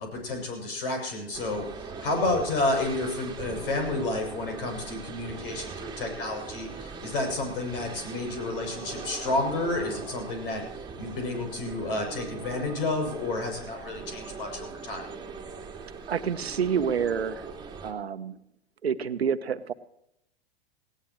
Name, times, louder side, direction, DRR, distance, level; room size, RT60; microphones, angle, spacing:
voice 1, 0.0-15.0, left 2 dB, 65° left, 3 dB, 7.5 m, -31 dB
sound 1, 1.3-17.9, right 4 dB, 15° right, 2.5 m, -40 dB
voice 2, 16.1-17.5 17.8-18.4 18.8-19.7, right 7 dB, 85° right, 12 dB, 1.1 m, -28 dB
20.0 x 17.0 x 3.1 m, 0.76 s
hypercardioid pair, 105°, 31 cm